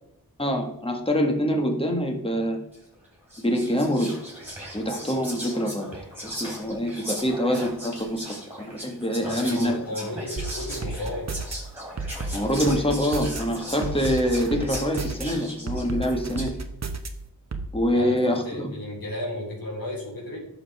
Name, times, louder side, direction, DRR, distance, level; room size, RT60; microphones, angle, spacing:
voice 1, 0.4-2.6 3.4-4.1 4.7-5.9 6.2-9.7 12.3-16.5 17.7-18.7, equal, 15° left, 2 dB, 1.8 m, -25 dB
Whispering, 2.7-2.9 3.3-16.6, equal, 5° right, 3.8 m, -38 dB
voice 2, 9.2-11.3 17.9-20.4, left 1 dB, 65° left, -4 dB, 4.1 m, -34 dB
sound 1, 10.4-11.5 12.0-13.4 13.8-15.2 15.7-17.1 17.5-17.7, right 3 dB, 45° right, 1.0 m, -31 dB
11.5 x 6.8 x 3.5 m, 0.82 s
wide cardioid pair, 110°, 38 cm